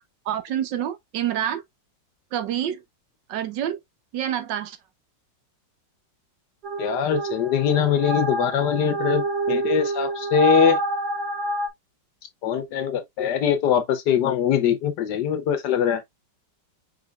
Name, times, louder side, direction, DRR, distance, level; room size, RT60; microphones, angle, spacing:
voice 1, 0.2-1.6 2.3-2.8 3.3-3.8 4.1-4.8, right 10 dB, 80° right, 1.5 m, -27 dB
sound 1, 6.6-11.7, right 2 dB, 45° right, 0.6 m, -26 dB
voice 2, 6.8-10.8 12.4-16.0, left 8 dB, 70° left, 1.4 m, -22 dB
5.2 x 4.4 x 2.3 m
omnidirectional pair, 2.0 m